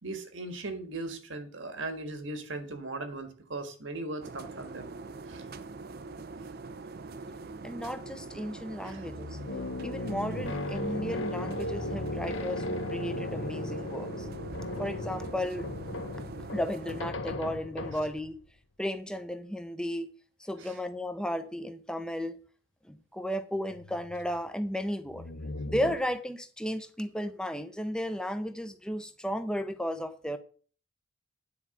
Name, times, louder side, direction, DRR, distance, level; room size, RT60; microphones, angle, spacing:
voice 1, 0.0-4.9 5.3-5.4 8.8-9.1 20.6-20.8, right 2 dB, 75° right, 1.6 m, -38 dB
sound 1, 4.2-17.0, right 3 dB, 50° right, 0.6 m, -43 dB
voice 2, 7.6-9.4 9.8-14.3 14.8-15.7 16.5-18.4 18.8-20.1 20.4-22.4 22.9-25.2 25.7-30.4, equal, 5° left, 0.7 m, -34 dB
sound 2, 8.4-18.4 23.7-24.4 25.1-26.0, left 2 dB, 70° left, 0.9 m, -37 dB
9.8 x 4.8 x 7.1 m
head